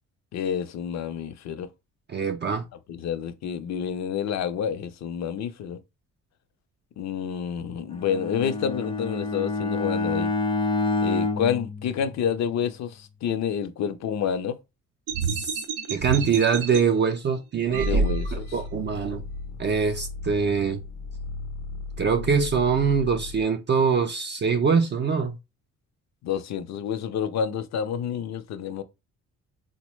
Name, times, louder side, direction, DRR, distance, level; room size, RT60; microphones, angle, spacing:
voice 1, 0.3-1.7 2.9-5.8 7.0-10.3 11.0-14.6 17.8-18.5 26.2-28.8, left 8 dB, 60° left, 0.5 m, -29 dB
voice 2, 2.1-2.6 15.2-15.6 15.9-18.1 18.3-19.2 19.6-20.8 22.0-25.4, right 6 dB, 35° right, 0.4 m, -24 dB
Bowed string instrument, 7.9-12.6, left 3 dB, 15° left, 0.5 m, -28 dB
sound 1, 15.1-16.8 17.7-18.6, right 4 dB, 90° right, 0.5 m, -27 dB
sound 2, 17.8-23.4, left 3 dB, 85° left, 0.8 m, -36 dB
3.8 x 2.1 x 3.0 m
cardioid pair, 90°, 30 cm